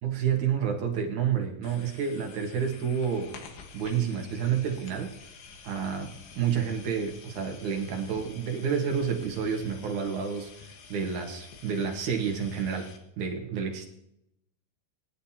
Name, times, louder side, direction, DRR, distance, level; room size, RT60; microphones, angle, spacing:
voice 1, 0.0-3.4 3.7-5.1 5.6-13.9, right 7 dB, 60° right, 3 dB, 2.4 m, -29 dB
sound 1, 1.6-13.0, left 5 dB, 85° left, 3.6 m, -49 dB
20.5 x 10.5 x 2.9 m, 0.81 s
omnidirectional pair, 4.6 m